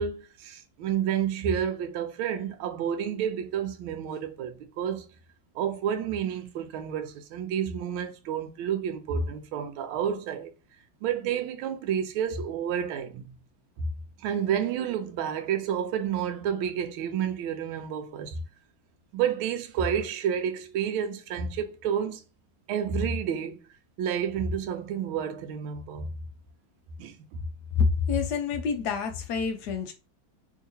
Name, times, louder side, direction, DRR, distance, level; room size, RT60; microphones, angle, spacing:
voice 1, 0.0-5.1 5.5-10.5 11.0-13.4 14.2-18.4 19.1-22.2 22.7-23.6 24.0-26.1 27.0-27.5, right 8 dB, 80° right, 1.4 m, -30 dB
voice 2, 27.7-29.9, left 5 dB, 70° left, 1.0 m, -27 dB
3.6 x 2.8 x 2.6 m
omnidirectional pair, 2.2 m